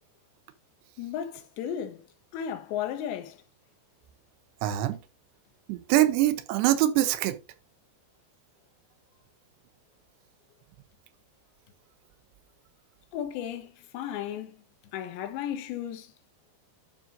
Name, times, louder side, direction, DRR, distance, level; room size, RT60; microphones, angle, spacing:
voice 1, 1.0-2.0 2.3-3.4 13.1-14.6 14.9-16.1, left 9 dB, 85° left, 3.3 m, -34 dB
voice 2, 4.6-5.0 5.7-7.4, right 14 dB, 80° right, 2.9 m, -24 dB
12.0 x 5.7 x 2.6 m
omnidirectional pair, 5.0 m